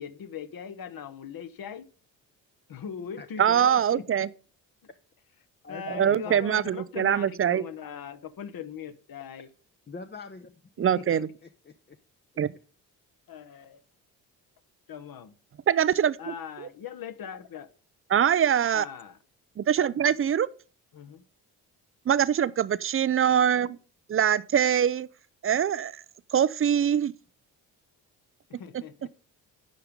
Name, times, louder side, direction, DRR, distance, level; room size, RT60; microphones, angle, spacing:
voice 1, 0.0-1.9 2.7-4.1 5.7-9.5 11.0-11.1 13.3-13.8 14.9-15.3 16.2-17.7 18.7-19.2 19.8-19.9 20.9-21.2 23.3-23.7 28.5-29.1, left 7 dB, 45° left, 1.1 m, -40 dB
voice 2, 3.4-4.3 5.9-7.6 10.8-11.3 12.4-12.5 15.7-16.7 18.1-18.8 19.6-20.5 22.1-23.8 24.1-25.1 25.4-26.0 26.3-27.1 28.7-28.8, right 9 dB, 30° right, 0.5 m, -23 dB
voice 3, 5.6-6.4 9.9-10.5 11.4-12.0, left 4 dB, 20° left, 0.8 m, -43 dB
10.5 x 5.8 x 5.2 m
hypercardioid pair, 45°, 49 cm